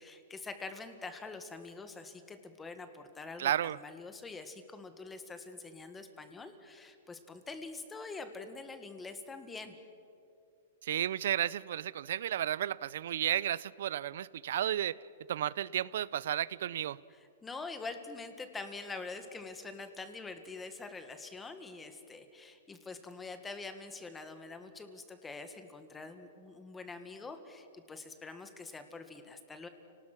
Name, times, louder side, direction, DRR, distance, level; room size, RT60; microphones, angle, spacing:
voice 1, 0.0-9.7 17.1-29.7, left 3 dB, 10° left, 8 dB, 1.6 m, -45 dB
voice 2, 3.4-3.8 10.8-15.0 15.3-17.0, right 11 dB, 70° right, 21 dB, 0.5 m, -33 dB
29.5 x 19.0 x 6.1 m, 2.4 s
hypercardioid pair, 150°, 0 cm